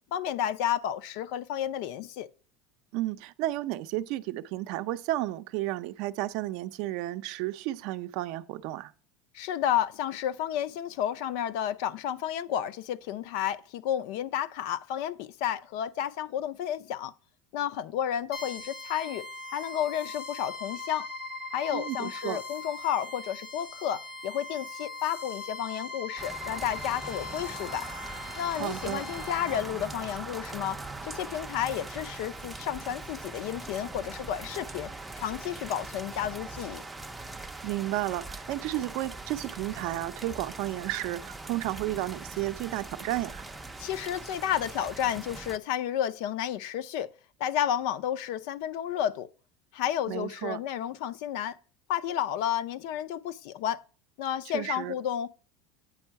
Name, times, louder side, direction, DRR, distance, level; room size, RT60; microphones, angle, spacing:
voice 1, 0.1-2.3 9.3-17.1 17.5-19.3 19.5-21.1 21.5-27.9 28.4-34.9 35.2-36.8 43.8-47.1 47.4-49.3 49.7-51.6 51.9-53.8 54.2-55.3, left 10 dB, 60° left, 0.5 m, -31 dB
voice 2, 2.9-8.9 21.7-22.4 28.6-29.0 37.6-43.4 50.1-50.6 54.5-54.9, right 16 dB, 55° right, 0.5 m, -32 dB
sound 1, 18.3-29.6, left 2 dB, 90° left, 3.2 m, -40 dB
sound 2, 26.2-45.6, right 2 dB, 5° right, 0.4 m, -41 dB
9.0 x 5.4 x 5.7 m
cardioid pair, 170°, 0 cm